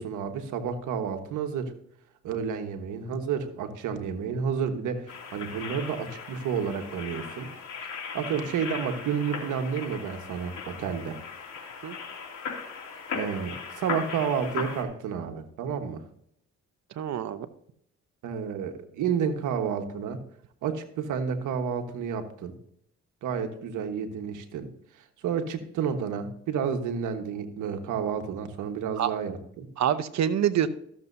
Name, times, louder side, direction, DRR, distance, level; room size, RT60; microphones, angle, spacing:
voice 1, 0.0-1.7 2.2-7.5 8.1-11.2 13.1-16.0 18.2-20.2 20.6-22.6 23.2-24.7 25.2-29.7, right 7 dB, 80° right, 7 dB, 1.4 m, -30 dB
sound 1, 5.1-14.8, left 6 dB, 65° left, 2.7 m, -38 dB
voice 2, 17.0-17.5 29.0-29.1 29.8-30.7, right 10 dB, 65° right, 12 dB, 0.9 m, -26 dB
14.0 x 7.2 x 2.7 m, 0.71 s
cardioid pair, 80°, 30 cm